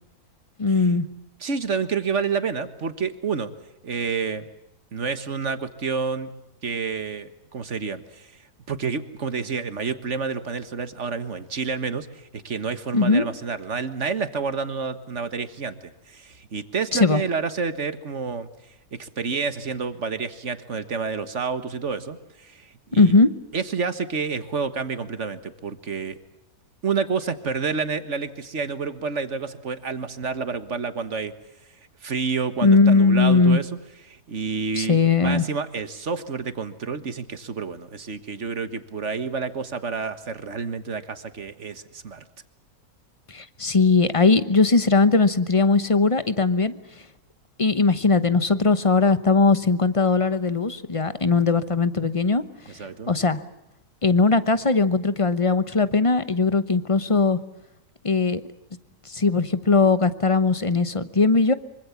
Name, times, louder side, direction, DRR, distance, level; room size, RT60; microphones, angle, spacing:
voice 1, 0.6-1.1 12.9-13.3 16.9-17.2 22.9-23.3 32.6-33.6 34.8-35.4 43.3-46.8 47.6-52.4 53.1-53.4 54.0-57.4 58.0-58.4 59.1-61.5, left 4 dB, 25° left, 13 dB, 0.9 m, -19 dB
voice 2, 1.4-3.5 3.8-4.4 4.9-6.3 6.6-8.3 8.7-18.5 18.9-23.1 23.5-26.2 26.8-31.3 32.0-33.7 34.1-42.2 51.3-51.5 52.7-53.1, right 5 dB, 50° right, 11 dB, 1.8 m, -29 dB
25.0 x 24.5 x 7.2 m, 0.89 s
omnidirectional pair, 1.6 m